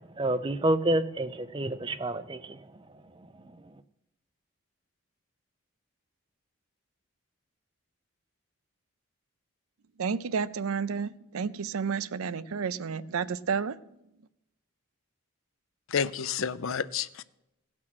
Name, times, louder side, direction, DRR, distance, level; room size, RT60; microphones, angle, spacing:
voice 1, 0.2-2.6, right 1 dB, 25° right, 11 dB, 0.5 m, -28 dB
voice 2, 10.0-13.8, right 6 dB, 80° right, 16 dB, 0.5 m, -31 dB
voice 3, 15.9-17.2, left 7 dB, 65° left, 16 dB, 0.5 m, -30 dB
16.0 x 6.1 x 6.1 m, 0.89 s
head